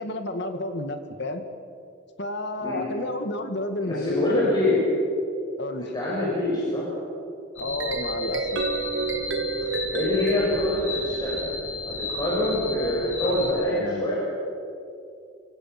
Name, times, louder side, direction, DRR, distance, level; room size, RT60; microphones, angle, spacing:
voice 1, 0.0-1.4 2.2-4.7 5.6-5.9 7.6-8.6 13.2-14.1, left 1 dB, 60° left, 7 dB, 2.1 m, -31 dB
voice 2, 3.8-4.8 5.8-6.9 9.9-11.4 11.8-14.1, left 1 dB, 20° left, -7 dB, 7.1 m, -25 dB
sound 1, 7.6-13.5, left 2 dB, 80° left, 7.3 m, -34 dB
sound 2, 7.6-11.9, right 4 dB, 70° right, 1.7 m, -30 dB
28.5 x 24.5 x 6.0 m, 2.6 s
head